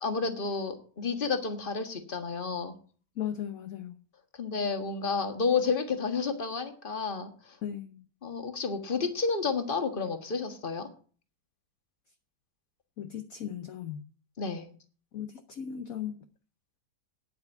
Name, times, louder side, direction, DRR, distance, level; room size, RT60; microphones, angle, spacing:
voice 1, 0.0-2.7 4.3-7.6 8.2-10.9 14.4-14.7, left 4 dB, 30° left, 1.6 m, -31 dB
voice 2, 3.2-4.0 7.6-8.1 13.0-14.1 15.1-16.2, left 9 dB, 55° left, 1.1 m, -37 dB
9.5 x 8.0 x 8.3 m
omnidirectional pair, 2.1 m